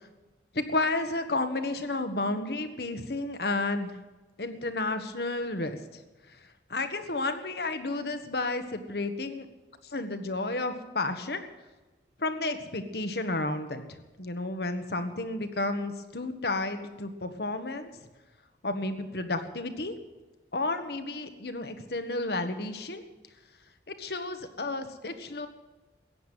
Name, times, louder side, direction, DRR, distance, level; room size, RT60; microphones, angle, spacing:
voice 1, 0.5-4.0 4.4-6.0 6.7-9.5 9.9-11.4 12.2-17.9 18.6-20.0 20.5-23.0 23.9-25.5, left 2 dB, 60° left, 8 dB, 1.4 m, -32 dB
14.5 x 9.4 x 9.0 m, 1.2 s
head